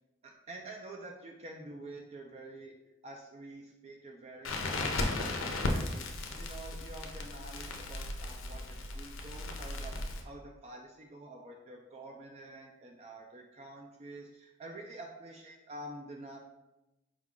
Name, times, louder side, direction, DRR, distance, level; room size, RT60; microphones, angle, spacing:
voice 1, 0.2-2.7 3.0-6.1 6.4-10.0 10.2-16.4, right 2 dB, 30° right, 1 dB, 0.3 m, -48 dB
Crackle, 4.4-10.2, left 2 dB, 65° left, 0.5 m, -36 dB
4.7 x 2.3 x 3.6 m, 0.94 s
head